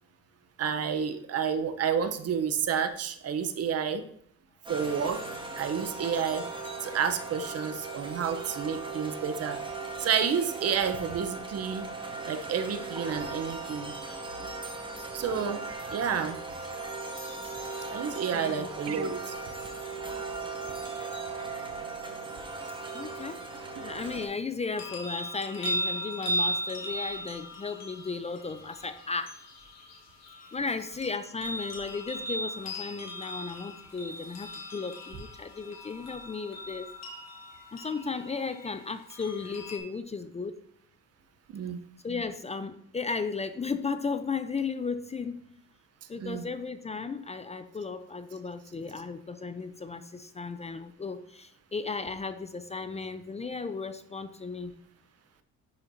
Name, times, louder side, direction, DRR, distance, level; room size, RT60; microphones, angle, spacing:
voice 1, 0.6-4.0 4.7-5.2 5.6-6.5 6.8-9.6 10.0-11.9 12.3-13.9 15.1-15.6 15.9-16.4 17.9-19.3 41.5-41.8 46.2-46.5, right 7 dB, 55° right, 11 dB, 0.7 m, -30 dB
sound 1, 4.6-24.3, right 3 dB, 15° right, 1.7 m, -38 dB
voice 2, 18.3-18.7 22.9-23.4 23.7-29.4 30.5-36.9 37.7-40.5 42.0-45.4 46.1-54.7, left 4 dB, 20° left, 11 dB, 0.4 m, -35 dB
sound 2, 24.7-39.8, equal, 60° left, 1.7 m, -37 dB
10.5 x 4.3 x 2.6 m, 0.68 s
cardioid pair, 90°, 30 cm